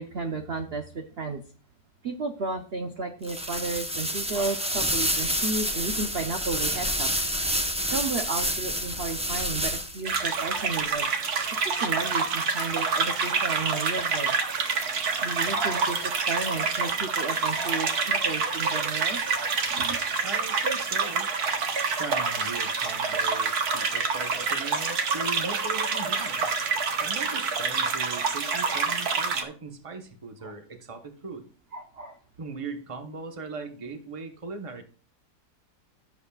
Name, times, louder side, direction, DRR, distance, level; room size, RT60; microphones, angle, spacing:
voice 1, 0.0-1.4 2.0-7.1 7.9-11.1 11.6-14.4 15.2-20.0 22.2-22.3 30.4-30.5 31.7-32.2, right 3 dB, 45° right, 5 dB, 0.9 m, -33 dB
sound 1, 3.2-10.1, equal, 5° right, 0.5 m, -28 dB
sound 2, 10.0-29.4, right 5 dB, 65° right, 1.7 m, -27 dB
voice 2, 20.2-21.3 22.0-26.5 27.0-31.5 32.4-34.8, right 4 dB, 20° right, 6 dB, 1.0 m, -39 dB
16.0 x 7.1 x 2.4 m, 0.39 s
omnidirectional pair, 1.8 m